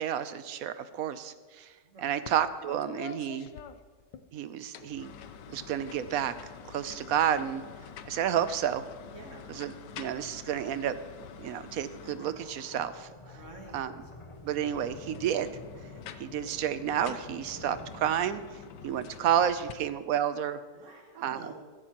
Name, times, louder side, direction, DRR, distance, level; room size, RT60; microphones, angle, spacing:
voice 1, 0.0-1.7 2.0-3.5 4.3-5.1 5.5-6.3 6.7-7.6 8.1-8.9 9.5-10.9 11.4-13.1 13.7-13.9 14.4-15.5 16.2-18.4 18.8-20.6 21.2-21.5, right 9 dB, 70° right, 12 dB, 0.9 m, -30 dB
voice 2, 1.8-2.2 9.1-9.4 13.3-13.8 20.7-21.5, right 2 dB, 50° right, 2 dB, 1.5 m, -48 dB
sound 1, 2.3-2.4 2.7-4.2 4.6-12.7 14.4-19.7, left 7 dB, 90° left, 1.3 m, -47 dB
sound 2, 12.2-19.6, left 2 dB, 50° left, 0.3 m, -50 dB
14.5 x 14.5 x 2.9 m, 1.4 s
omnidirectional pair, 1.8 m